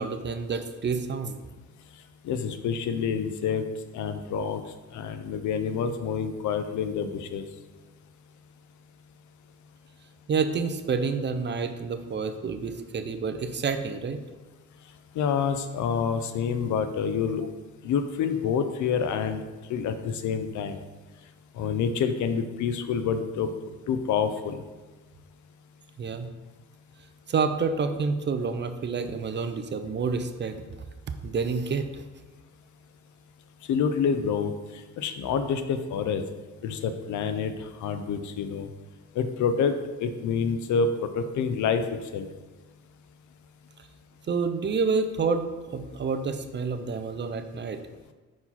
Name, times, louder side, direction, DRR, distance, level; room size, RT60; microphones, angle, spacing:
voice 1, 0.0-1.4 10.3-14.2 26.0-26.3 27.3-30.6 31.2-32.0 44.3-47.8, right 5 dB, 35° right, 8 dB, 0.5 m, -28 dB
voice 2, 2.2-3.6 3.9-4.6 4.9-7.4 15.2-17.4 17.8-19.4 19.7-20.8 21.6-23.5 23.9-24.6 33.7-34.5 35.0-36.2 36.6-37.5 37.8-38.7 39.2-39.7 40.0-41.8 42.1-42.3, left 6 dB, 75° left, 9 dB, 0.6 m, -27 dB
5.6 x 4.7 x 4.1 m, 1.2 s
cardioid pair, 90°, 30 cm